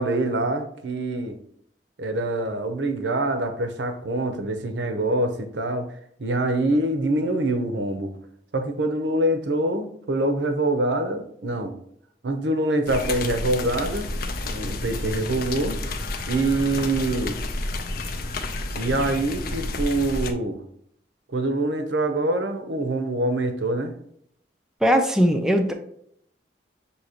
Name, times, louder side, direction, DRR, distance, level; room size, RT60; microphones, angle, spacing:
voice 1, 0.0-1.4 2.0-5.9 6.2-8.1 8.5-11.7 12.2-14.1 14.4-15.8 16.3-17.4 18.8-20.6 21.3-23.9, right 2 dB, 80° right, 7 dB, 0.7 m, -25 dB
sound 1, 12.9-20.3, left 2 dB, 55° left, 0.5 m, -30 dB
voice 2, 24.8-25.7, equal, 5° right, 4 dB, 0.4 m, -19 dB
6.3 x 2.9 x 2.8 m, 0.69 s
head